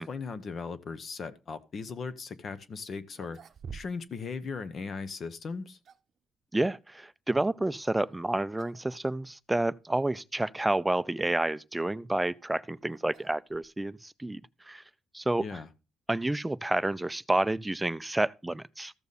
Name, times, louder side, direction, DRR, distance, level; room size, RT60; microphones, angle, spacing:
voice 1, 0.0-3.4 3.7-5.8 15.4-15.7, left 5 dB, 50° left, 0.9 m, -38 dB
sound 1, 3.1-4.2 4.5-4.6 5.5-6.2 8.0-8.2 8.6-8.9 9.2-9.3 10.1-10.2 11.9-14.1, right 6 dB, 55° right, 0.7 m, -49 dB
voice 2, 6.5-14.4 14.7-14.8 15.1-15.6 16.1-18.9, right 2 dB, 10° right, 0.4 m, -29 dB
14.0 x 7.0 x 4.1 m
cardioid pair, 90°, 0 cm